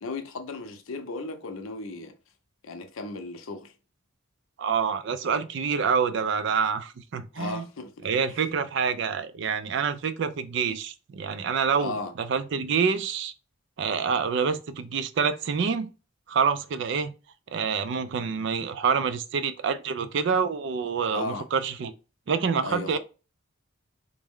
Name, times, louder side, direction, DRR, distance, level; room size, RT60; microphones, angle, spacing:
voice 1, 0.0-2.1 2.6-3.7 7.3-8.1 11.8-12.1 21.1-21.5 22.6-23.0, left 3 dB, 85° left, 0.6 m, -35 dB
voice 2, 4.6-7.7 8.0-13.3 13.8-15.9 16.3-17.1 17.5-21.9 22.3-23.0, right 6 dB, 60° right, 0.4 m, -27 dB
3.3 x 2.1 x 3.5 m
head